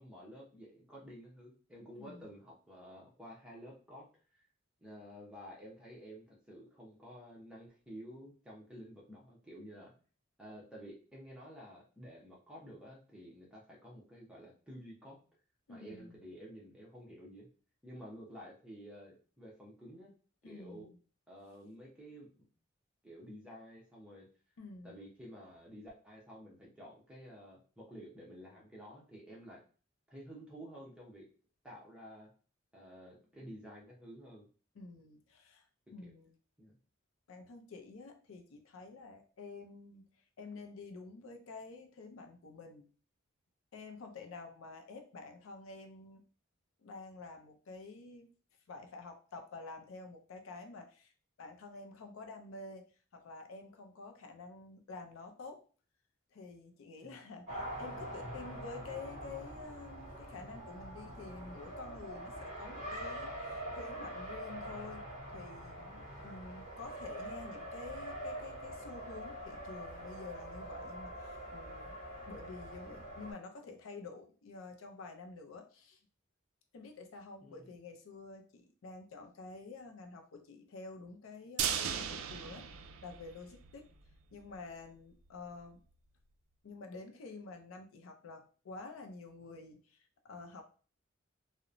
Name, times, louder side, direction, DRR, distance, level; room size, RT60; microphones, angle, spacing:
voice 1, 0.0-4.1 4.3-4.4 4.8-9.9 10.4-15.2 15.7-17.5 17.8-20.1 20.4-20.9 21.3-22.3 23.0-24.3 24.8-29.6 30.1-31.3 31.6-32.3 32.7-34.5 36.0-36.1 36.6-36.8 57.0-57.2 77.4-77.7, equal, 5° right, -4 dB, 0.7 m, -51 dB
voice 2, 2.0-2.3 15.7-16.2 20.4-21.0 24.6-25.0 34.7-35.7 35.9-36.3 37.3-40.1 40.4-42.9 43.7-46.2 46.8-48.3 48.7-51.1 51.4-55.6 56.3-72.0 72.3-76.0 76.7-83.9 84.3-85.8 86.6-90.6, left 3 dB, 75° left, 5 dB, 0.4 m, -49 dB
Race car auto racing, 57.5-73.3, right 1 dB, 30° right, 1.3 m, -44 dB
sound 1, 81.6-83.7 84.1-84.2 84.5-84.6, right 8 dB, 80° right, 0.3 m, -37 dB
2.9 x 2.0 x 2.5 m, 0.39 s
head